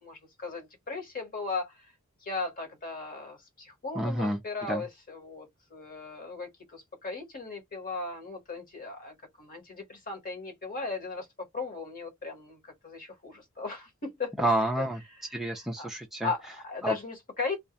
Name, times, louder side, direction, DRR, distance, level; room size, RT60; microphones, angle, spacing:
voice 1, 0.0-1.7 2.3-11.2 11.5-12.6 12.8-14.5 14.8-14.9 15.8-15.9 16.2-17.6, left 4 dB, 40° left, 1.1 m, -37 dB
voice 2, 4.0-4.4 4.7-4.8 14.4-15.0 15.3-16.3 16.8-17.0, right 1 dB, ahead, 0.4 m, -29 dB
2.3 x 2.2 x 2.7 m
head